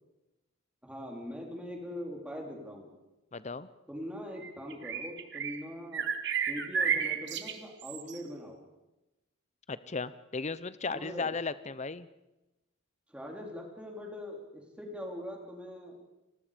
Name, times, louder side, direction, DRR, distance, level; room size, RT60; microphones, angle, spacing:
voice 1, 0.8-2.9 3.9-6.1 6.5-8.6 10.9-11.3 13.1-16.0, equal, 5° right, 0 dB, 3.6 m, -42 dB
voice 2, 3.3-3.7 9.7-12.1, left 4 dB, 35° left, 15 dB, 0.7 m, -35 dB
sound 1, 4.4-5.7 5.9-8.2, right 7 dB, 60° right, 1.4 m, -32 dB
30.0 x 20.0 x 5.1 m, 0.98 s
head